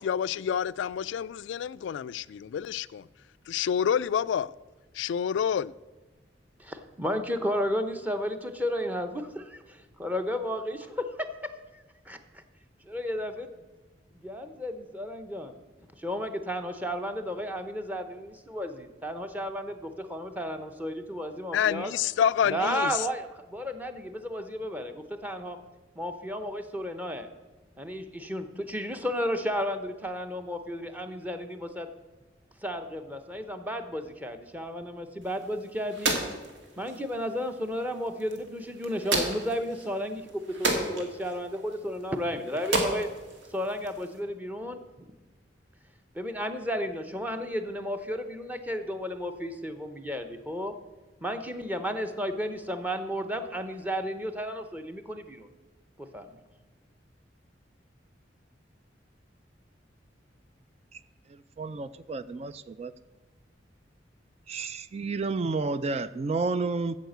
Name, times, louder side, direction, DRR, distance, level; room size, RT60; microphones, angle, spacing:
voice 1, 0.0-3.1 3.5-4.5 4.9-5.7 21.5-23.1, left 8 dB, 80° left, 0.3 m, -28 dB
voice 2, 6.6-12.4 12.8-13.5 14.1-15.5 16.0-21.9 22.4-25.6 26.0-27.3 27.8-31.9 32.6-36.2 36.8-43.1 43.5-44.8 46.1-50.7 51.2-55.5 56.0-56.4, equal, 10° right, 0.8 m, -33 dB
sound 1, 35.2-44.2, right 2 dB, 80° right, 2.0 m, -34 dB
voice 3, 61.6-62.9 64.5-67.0, right 3 dB, 35° right, 0.3 m, -31 dB
9.2 x 7.3 x 7.9 m
head